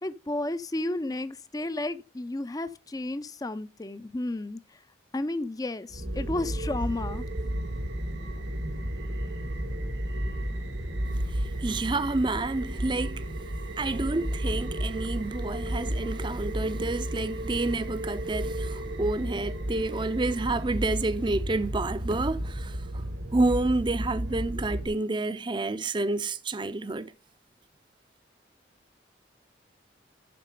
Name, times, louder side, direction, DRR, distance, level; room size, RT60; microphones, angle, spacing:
voice 1, 0.0-4.8 5.1-7.2, left 2 dB, 20° left, 0.5 m, -32 dB
sound 1, 5.9-24.9, right 1 dB, 90° right, 2.0 m, -33 dB
voice 2, 11.3-13.2 13.8-23.0 23.3-27.1, right 2 dB, 25° right, 0.5 m, -29 dB
12.0 x 4.2 x 5.2 m
head